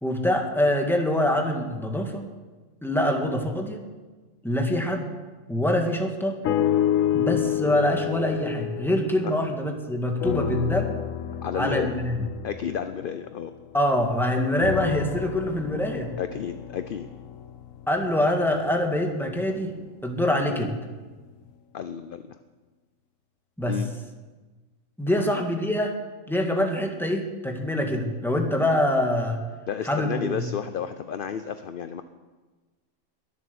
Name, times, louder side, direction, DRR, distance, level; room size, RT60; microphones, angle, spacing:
voice 1, 0.0-2.3 2.8-3.8 4.4-5.1 5.5-6.4 7.1-11.0 11.5-12.2 13.7-16.1 17.9-19.7 20.0-20.7 23.6-23.8 25.0-25.9 26.3-29.4 29.8-30.4, left 1 dB, ahead, 2 dB, 1.7 m, -25 dB
sound 1, 6.4-9.8 10.2-13.9 14.6-18.8 19.5-19.6, left 11 dB, 85° left, 1.1 m, -29 dB
voice 2, 11.4-11.9 12.4-13.5 16.2-17.1 21.7-22.4 23.7-23.9 25.1-25.2 29.7-32.0, left 8 dB, 55° left, 10 dB, 0.7 m, -31 dB
21.5 x 7.8 x 6.9 m, 1.3 s
omnidirectional pair, 1.3 m